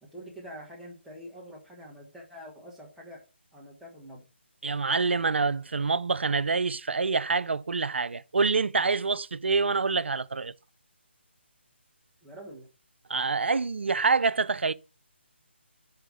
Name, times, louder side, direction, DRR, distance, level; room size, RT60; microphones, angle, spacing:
voice 1, 0.0-3.3 3.5-4.3 12.2-12.7, equal, ahead, 1.7 m, -45 dB
voice 2, 4.6-10.5 13.1-14.7, right 4 dB, 65° right, 0.5 m, -26 dB
5.7 x 5.5 x 6.1 m
figure-of-eight pair, 150°, 6 cm